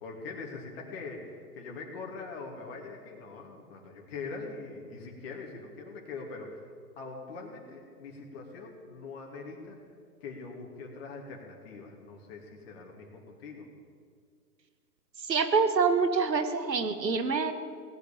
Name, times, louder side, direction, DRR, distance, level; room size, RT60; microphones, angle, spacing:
voice 1, 0.0-6.6 7.0-9.8 10.2-13.7, left 4 dB, 35° left, 0 dB, 2.7 m, -42 dB
voice 2, 15.3-17.5, right 5 dB, 85° right, 9 dB, 1.7 m, -26 dB
18.0 x 8.6 x 8.7 m, 2.1 s
hypercardioid pair, 145°, 49 cm